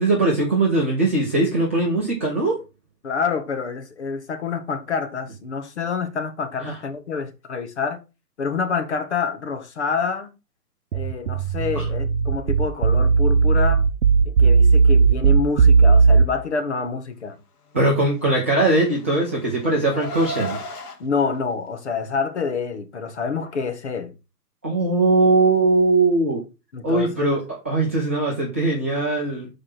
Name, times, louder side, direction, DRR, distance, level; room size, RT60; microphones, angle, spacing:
voice 1, 0.0-2.6 6.6-6.8 11.7-11.9 17.7-20.6 24.6-26.4 26.8-29.5, right 2 dB, 10° right, 0.7 m, -20 dB
voice 2, 3.0-8.0 8.4-10.3 10.9-13.8 14.2-17.4 21.0-24.1 26.7-27.4, left 5 dB, 45° left, 1.2 m, -27 dB
sound 1, 10.9-16.3, right 5 dB, 65° right, 0.8 m, -16 dB
Car, 18.5-21.0, left 1 dB, 70° left, 1.8 m, -34 dB
6.6 x 4.9 x 4.3 m
hypercardioid pair, 175°, 48 cm